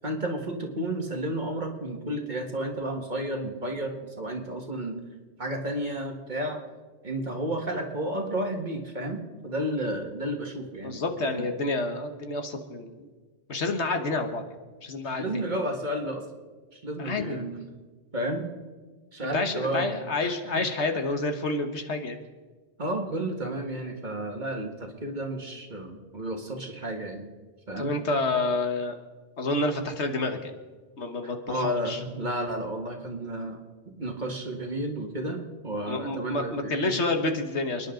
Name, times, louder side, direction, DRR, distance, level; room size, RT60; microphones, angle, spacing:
voice 1, 0.0-5.0 5.4-6.6 7.0-11.5 15.0-16.2 16.7-17.6 18.1-18.5 19.1-20.6 22.8-27.2 27.7-28.0 31.2-33.6 33.9-37.0, right 1 dB, 40° right, 2 dB, 2.0 m, -32 dB
voice 2, 10.8-13.1 13.5-14.4 14.8-15.2 17.0-17.4 19.3-22.2 27.8-29.0 29.4-30.5 31.0-32.0 35.9-37.9, left 2 dB, 75° left, 6 dB, 1.7 m, -29 dB
29.5 x 10.5 x 3.9 m, 1.4 s
omnidirectional pair, 1.2 m